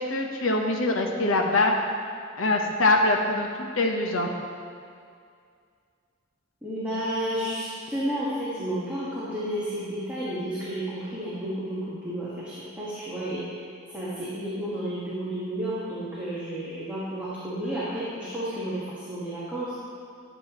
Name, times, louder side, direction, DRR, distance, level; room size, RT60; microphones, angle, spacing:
voice 1, 0.0-1.7 2.4-4.3, left 2 dB, 90° left, 1 dB, 1.1 m, -23 dB
voice 2, 6.6-19.7, right 1 dB, 5° right, -11 dB, 1.7 m, -32 dB
12.5 x 7.9 x 3.1 m, 2.2 s
head